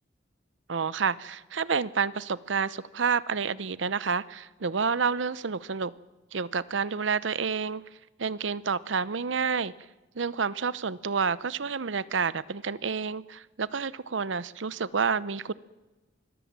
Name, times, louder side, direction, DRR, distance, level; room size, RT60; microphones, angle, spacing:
voice 1, 0.7-5.9 6.3-7.8 8.2-9.7 10.2-15.5, right 5 dB, 80° right, 0.7 m, -29 dB
25.5 x 21.0 x 7.5 m
head